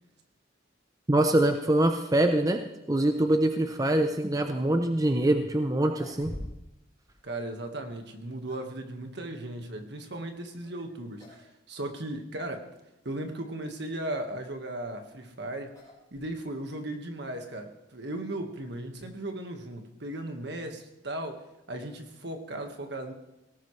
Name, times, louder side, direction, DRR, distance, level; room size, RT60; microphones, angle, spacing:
voice 1, 1.1-2.6 2.9-6.3, right 1 dB, 20° right, 6 dB, 0.7 m, -24 dB
sound 1, 5.7-6.8 7.1-7.2 8.1-8.8 10.6-10.9 11.2-11.5 11.8-11.9 12.7-12.8 14.6-16.7, equal, 20° left, 4.7 m, -45 dB
voice 2, 7.2-12.7 13.0-15.7 16.1-23.1, right 1 dB, 65° right, 5 dB, 1.7 m, -37 dB
18.0 x 18.0 x 3.3 m, 0.93 s
head